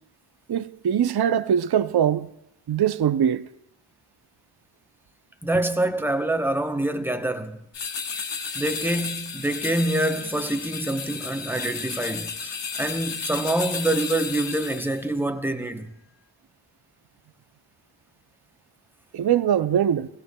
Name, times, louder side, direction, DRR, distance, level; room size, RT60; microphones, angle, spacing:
voice 1, 0.5-2.3 2.7-3.5 19.1-20.1, right 9 dB, 55° right, 0.5 m, -22 dB
voice 2, 5.4-7.7 8.5-15.9, right 1 dB, 5° right, 0.7 m, -26 dB
sound 1, 7.7-15.1, left 5 dB, 65° left, 0.7 m, -33 dB
17.0 x 16.5 x 2.2 m
wide cardioid pair, 45°, 47 cm